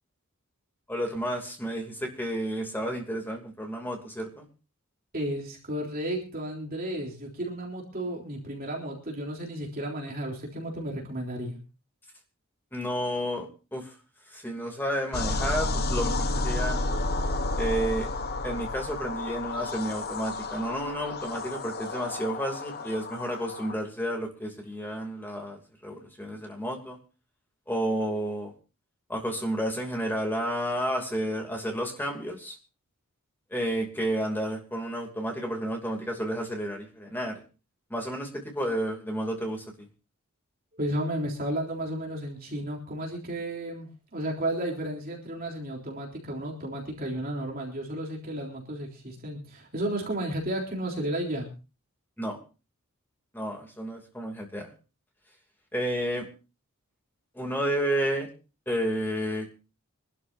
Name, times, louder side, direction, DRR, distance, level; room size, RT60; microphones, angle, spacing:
voice 1, 0.9-4.4 12.7-13.9 14.3-16.8 17.5-18.1 18.4-27.0 27.7-28.5 29.1-32.6 33.5-37.3 37.9-39.9 52.2-52.4 53.3-54.7 55.7-56.3 57.3-58.3 58.7-59.5, equal, 10° left, 1 dB, 2.7 m, -31 dB
voice 2, 5.1-11.6 40.7-51.5, right 1 dB, 40° right, -1 dB, 3.6 m, -33 dB
sound 1, 15.1-23.7, left 2 dB, 45° left, 1.0 m, -31 dB
25.5 x 12.5 x 2.7 m, 0.33 s
head